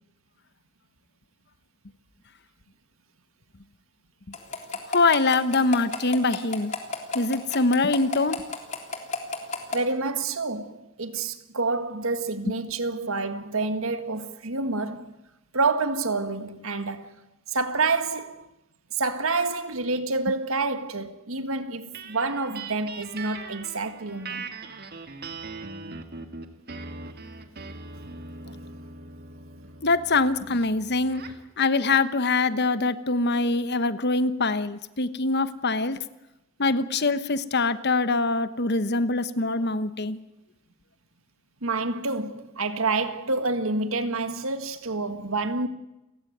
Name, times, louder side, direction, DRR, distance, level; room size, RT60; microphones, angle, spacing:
sound 1, 4.3-9.8, left 4 dB, 30° left, 3.4 m, -31 dB
voice 1, 4.9-6.7 7.1-8.4 29.8-31.2 31.6-36.0 36.6-40.2, left 3 dB, 50° left, 1.1 m, -24 dB
voice 2, 9.7-15.1 15.5-17.2 17.5-18.5 18.9-24.6 28.4-28.6 41.6-45.7, right 3 dB, 65° right, 1.9 m, -28 dB
sound 2, 21.9-31.5, right 4 dB, 45° right, 1.9 m, -41 dB
29.5 x 15.5 x 9.4 m
head